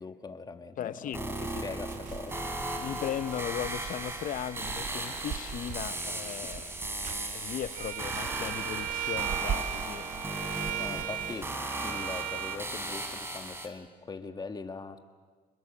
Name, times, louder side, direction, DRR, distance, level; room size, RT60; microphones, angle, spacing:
voice 1, 0.0-1.3 1.6-2.4 6.4-6.5 10.8-11.5 11.8-15.0, left 4 dB, 25° left, 1.8 m, -41 dB
voice 2, 0.8-1.7 2.7-6.7 7.3-10.1, left 10 dB, 55° left, 0.8 m, -37 dB
sound 1, 1.1-13.7, right 1 dB, 15° right, 3.4 m, -37 dB
sound 2, 1.9-11.6, right 8 dB, 50° right, 0.9 m, -42 dB
Bowed string instrument, 7.7-12.6, right 12 dB, 85° right, 1.9 m, -36 dB
27.5 x 21.0 x 7.3 m
cardioid pair, 110°, 17 cm